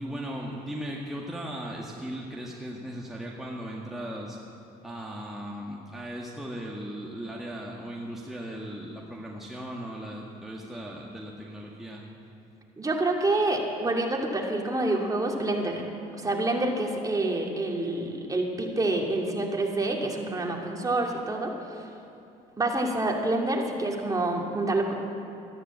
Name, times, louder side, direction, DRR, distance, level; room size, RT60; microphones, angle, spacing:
voice 1, 0.0-4.4 4.8-12.0, equal, ahead, -3 dB, 1.8 m, -37 dB
voice 2, 12.8-15.8 16.1-21.8 22.6-24.9, right 2 dB, 20° right, 0 dB, 2.6 m, -27 dB
14.0 x 11.5 x 8.5 m, 2.8 s
supercardioid pair, 80°, 17 cm